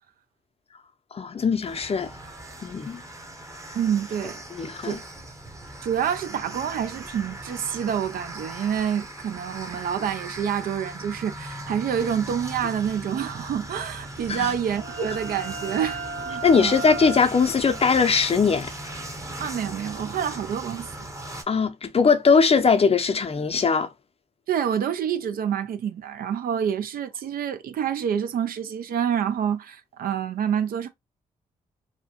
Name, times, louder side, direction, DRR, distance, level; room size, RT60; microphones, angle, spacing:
voice 1, 1.1-2.1 2.6-3.0 4.6-5.0 14.3-14.5 16.4-18.7 21.5-23.9, left 5 dB, 40° left, 0.6 m, -20 dB
sound 1, 1.6-21.4, right 1 dB, 20° right, 0.8 m, -39 dB
voice 2, 3.7-4.4 4.8-5.0 5.8-16.0 16.3-16.8 19.4-20.9 24.5-30.9, right 8 dB, 65° right, 0.5 m, -27 dB
sound 2, 14.2-19.7, right 3 dB, 85° right, 1.0 m, -37 dB
2.8 x 2.1 x 2.8 m
hypercardioid pair, 40°, 16 cm